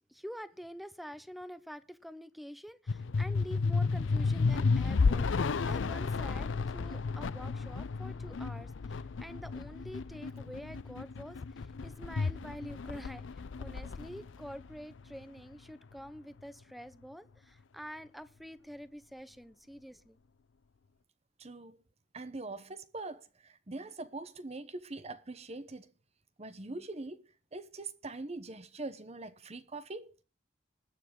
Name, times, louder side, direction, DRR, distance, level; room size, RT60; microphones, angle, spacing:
voice 1, 0.1-20.2, equal, ahead, 0.7 m, -47 dB
sound 1, 2.9-15.4, left 4 dB, 75° left, 0.5 m, -32 dB
voice 2, 21.4-21.8 22.1-25.9 26.4-27.2 27.5-30.2, right 2 dB, 35° right, 0.9 m, -43 dB
20.5 x 7.3 x 3.8 m
head